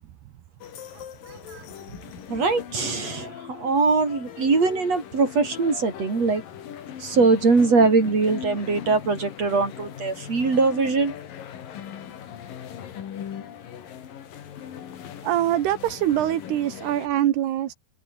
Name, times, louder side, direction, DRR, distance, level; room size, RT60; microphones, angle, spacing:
sound 1, 0.6-17.1, left 9 dB, 60° left, 3.7 m, -40 dB
voice 1, 0.9-2.0 15.2-17.7, right 12 dB, 75° right, 3.6 m, -25 dB
voice 2, 2.3-6.4 7.0-11.1, right 4 dB, 40° right, 5.9 m, -22 dB
omnidirectional pair, 4.9 m